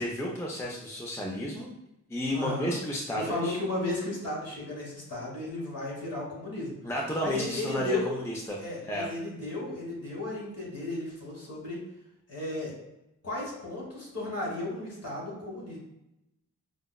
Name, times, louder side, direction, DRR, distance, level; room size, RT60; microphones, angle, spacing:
voice 1, 0.0-1.7 2.1-3.6 6.8-8.6 8.9-9.1, left 1 dB, 10° left, -2 dB, 0.4 m, -32 dB
voice 2, 2.3-2.7 3.1-6.7 7.2-8.0 8.6-11.8 12.3-12.7 13.2-15.8, left 2 dB, 50° left, -4 dB, 1.5 m, -34 dB
5.0 x 2.0 x 2.2 m, 0.90 s
wide cardioid pair, 130°, 33 cm